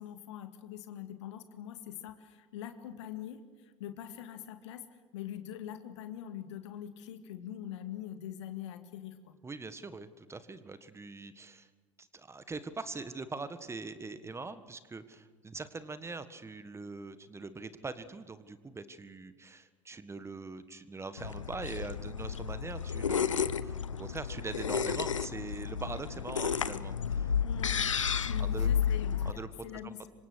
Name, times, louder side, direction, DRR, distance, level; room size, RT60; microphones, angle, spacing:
voice 1, 0.0-4.9 5.1-9.3 27.4-27.8 28.3-30.1, left 11 dB, 65° left, 8 dB, 2.1 m, -43 dB
voice 2, 9.4-11.7 12.0-27.3 28.4-28.7 29.2-30.0, right 3 dB, 15° right, 12 dB, 1.6 m, -42 dB
sound 1, 21.2-29.3, left 7 dB, 85° left, 0.8 m, -32 dB
27.5 x 25.0 x 6.3 m, 1.4 s
figure-of-eight pair, 75°, 16 cm